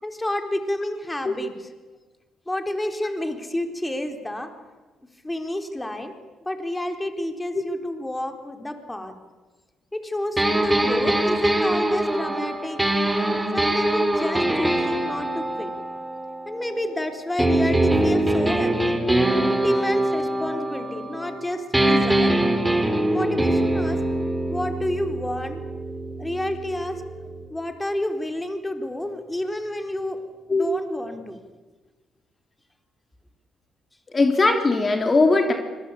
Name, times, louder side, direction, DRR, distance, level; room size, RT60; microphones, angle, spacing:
voice 1, 0.0-1.7 2.5-4.5 5.2-9.2 9.9-12.8 13.5-15.7 16.5-19.0 19.5-22.3 23.1-24.0 24.5-25.6 26.2-27.0 27.5-30.2 30.5-31.4, left 1 dB, 15° left, 5 dB, 4.2 m, -30 dB
sound 1, 10.4-16.9 17.4-21.4 21.7-27.5, right 1 dB, 10° right, 4.4 m, -23 dB
voice 2, 34.1-35.5, left 3 dB, 35° left, 4 dB, 3.4 m, -19 dB
25.5 x 22.5 x 8.7 m, 1.2 s
supercardioid pair, 60°, 0 cm